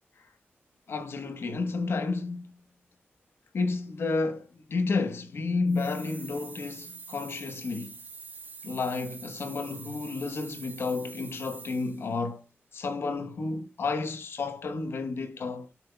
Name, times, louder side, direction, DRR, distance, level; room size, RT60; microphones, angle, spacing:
voice 1, 0.9-2.5 3.5-8.0 8.6-12.4 12.7-15.7, left 3 dB, 75° left, 1.1 m, -31 dB
sound 1, 5.7-12.1, right 4 dB, 50° right, 1.5 m, -45 dB
16.0 x 6.1 x 2.3 m
wide cardioid pair, 155°, 4 cm